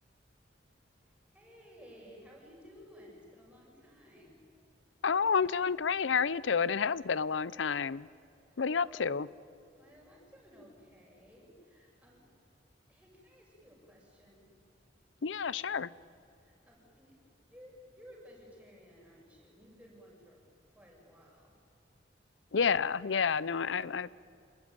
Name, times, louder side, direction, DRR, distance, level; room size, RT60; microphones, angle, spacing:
voice 1, 1.0-4.4 8.4-9.3 9.7-12.2 12.9-14.5 16.4-21.6, equal, 5° right, -2 dB, 6.9 m, -56 dB
voice 2, 5.0-8.1 8.6-9.3 15.2-15.9 22.5-24.1, left 6 dB, 85° left, 20 dB, 0.6 m, -30 dB
27.0 x 20.5 x 9.5 m, 2.5 s
head